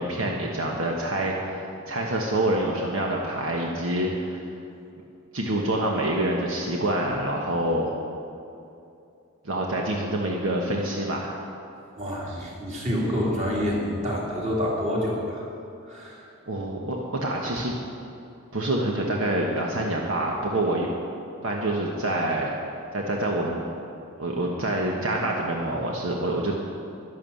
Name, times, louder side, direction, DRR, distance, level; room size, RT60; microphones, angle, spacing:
voice 1, 0.0-4.4 5.3-7.9 9.4-11.3 16.5-17.7 18.5-20.9 21.4-22.5 22.9-23.7 24.2-26.5, right 1 dB, 65° right, -1 dB, 1.3 m, -26 dB
voice 2, 12.0-15.5 15.8-16.3, equal, 35° right, -4 dB, 3.1 m, -27 dB
12.0 x 11.0 x 7.1 m, 2.6 s
head